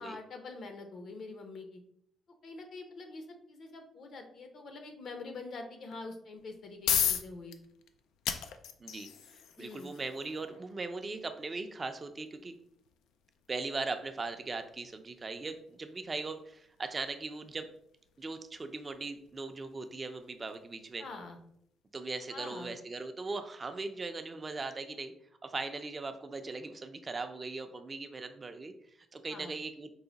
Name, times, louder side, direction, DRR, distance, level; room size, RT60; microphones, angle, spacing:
voice 1, 0.0-1.8 2.4-7.6 9.6-9.9 21.0-21.4 22.3-22.7 29.3-29.5, left 3 dB, 60° left, 5 dB, 0.8 m, -45 dB
sound 1, 6.4-21.2, left 9 dB, 85° left, 0.3 m, -40 dB
voice 2, 8.8-12.5 13.5-17.7 18.2-21.0 21.9-25.1 25.4-28.7 29.1-29.9, right 3 dB, 30° right, 7 dB, 0.5 m, -39 dB
4.7 x 2.1 x 3.9 m, 0.70 s
cardioid pair, 90°, 0 cm